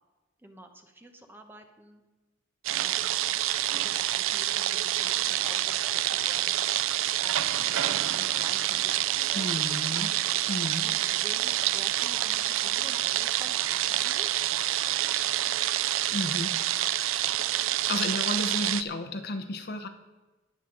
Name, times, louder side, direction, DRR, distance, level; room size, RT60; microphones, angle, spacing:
voice 1, 0.4-2.0 2.8-3.4 3.7-6.7 7.2-9.6 10.8-15.3, right 1 dB, 10° right, 5 dB, 1.0 m, -49 dB
sound 1, 2.6-18.8, right 13 dB, 90° right, 0.4 m, -27 dB
voice 2, 9.3-10.2 10.5-10.9 16.1-16.6 17.9-19.9, left 2 dB, 55° left, 6 dB, 1.0 m, -32 dB
19.5 x 7.4 x 3.9 m, 1.2 s
head